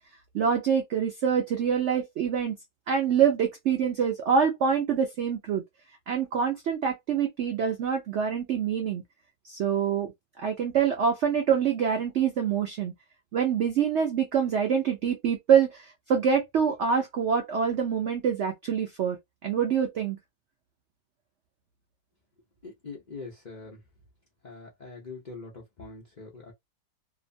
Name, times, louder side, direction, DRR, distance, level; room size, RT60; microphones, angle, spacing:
voice 1, 0.3-2.6 2.9-5.6 6.1-9.0 9.4-10.1 10.4-12.9 13.3-19.2 19.4-20.2, right 7 dB, 80° right, 0.6 m, -25 dB
voice 2, 22.6-23.8 24.4-26.5, left 4 dB, 55° left, 0.4 m, -43 dB
2.9 x 2.1 x 2.6 m
omnidirectional pair, 1.9 m